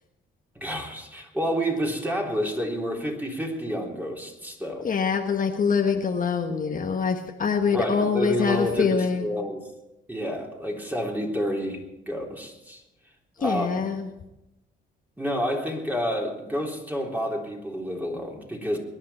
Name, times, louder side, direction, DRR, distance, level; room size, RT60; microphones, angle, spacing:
voice 1, 0.6-4.8 7.7-9.6 10.1-12.8 13.4-13.9 15.2-18.8, equal, 10° right, -1 dB, 3.8 m, -29 dB
voice 2, 4.8-9.3 13.4-14.1, left 6 dB, 45° left, 3 dB, 1.4 m, -24 dB
23.0 x 10.5 x 4.4 m, 0.92 s
cardioid pair, 90°, 20 cm